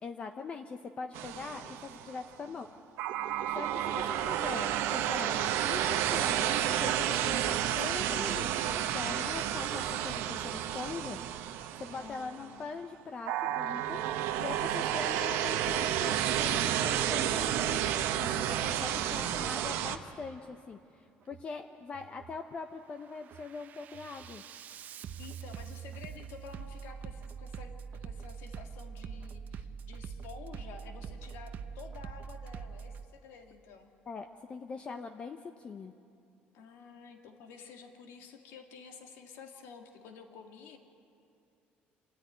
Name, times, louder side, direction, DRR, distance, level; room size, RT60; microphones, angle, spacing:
voice 1, 0.0-2.7 3.5-11.2 11.8-14.0 14.4-20.8 21.2-24.4 34.1-35.9, left 4 dB, 30° left, 6 dB, 0.7 m, -42 dB
sound 1, 1.1-2.2 3.0-12.5 13.3-20.0, right 11 dB, 80° right, 1.0 m, -31 dB
voice 2, 1.3-1.7 2.5-2.6 3.9-4.2 11.9-12.8 25.2-33.9 36.5-40.8, left 5 dB, 80° left, 3 dB, 2.4 m, -51 dB
Bass drum, 17.3-17.5 17.9-18.4 19.2-19.5 19.9-20.4 21.2-21.5 21.9-22.4 22.8-33.0, right 7 dB, 45° right, 0.6 m, -44 dB
26.5 x 14.0 x 9.5 m, 2.7 s
cardioid pair, 155°, 4 cm